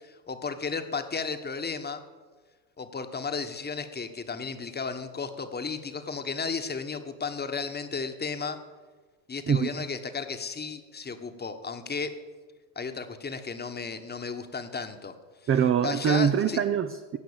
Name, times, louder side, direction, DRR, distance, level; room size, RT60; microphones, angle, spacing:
voice 1, 0.0-2.0 2.8-8.6 9.3-12.2 12.7-15.1 15.8-16.6, left 5 dB, 20° left, 8 dB, 1.4 m, -34 dB
voice 2, 9.5-9.9 15.5-17.2, right 8 dB, 25° right, 8 dB, 0.7 m, -24 dB
16.5 x 6.1 x 8.9 m, 1.4 s
supercardioid pair, 90°, 49 cm